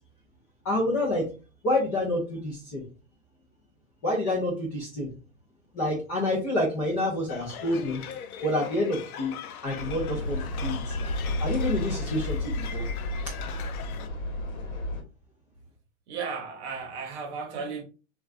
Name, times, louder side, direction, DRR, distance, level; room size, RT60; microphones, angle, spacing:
voice 1, 0.6-1.3 1.6-2.8 4.0-5.1 5.7-8.0 8.4-9.3 9.6-10.9 11.4-12.8, left 1 dB, 15° left, 0.4 m, -28 dB
sound 1, 7.3-14.1, left 8 dB, 85° left, 0.5 m, -41 dB
sound 2, 9.8-15.0, left 1 dB, 60° left, 1.1 m, -31 dB
voice 2, 16.1-17.8, right 5 dB, 50° right, 0.9 m, -34 dB
3.2 x 2.3 x 2.4 m
hypercardioid pair, 140°, 42 cm